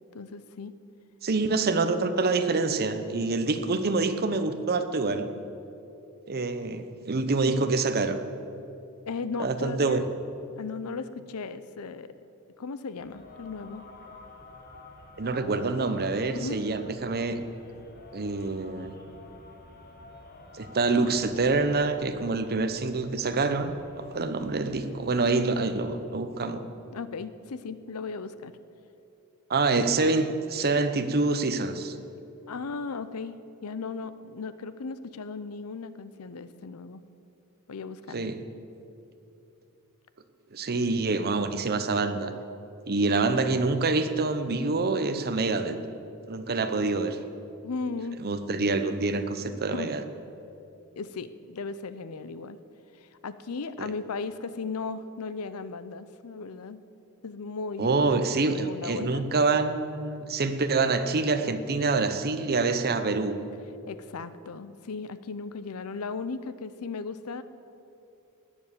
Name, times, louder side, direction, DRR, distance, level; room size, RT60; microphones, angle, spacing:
voice 1, 0.1-0.7 7.4-7.7 9.1-10.0 10.6-12.1 12.6-13.9 16.3-16.6 26.9-28.5 32.5-37.0 37.7-38.3 47.6-48.2 49.7-49.9 51.0-52.6 52.9-56.8 57.2-58.0 58.4-59.3 63.9-67.4, left 4 dB, 75° left, 14 dB, 0.6 m, -36 dB
voice 2, 1.2-5.3 6.3-8.2 9.4-10.0 15.2-17.4 18.1-19.0 20.5-26.6 29.5-31.9 38.1-38.4 40.5-42.3 42.9-45.8 46.3-47.2 48.2-50.0 53.8-53.9 57.8-63.4, right 3 dB, 45° right, 10 dB, 0.8 m, -26 dB
sound 1, 13.0-26.0, left 2 dB, 45° left, 1.5 m, -50 dB
18.5 x 7.2 x 7.2 m, 2.8 s
head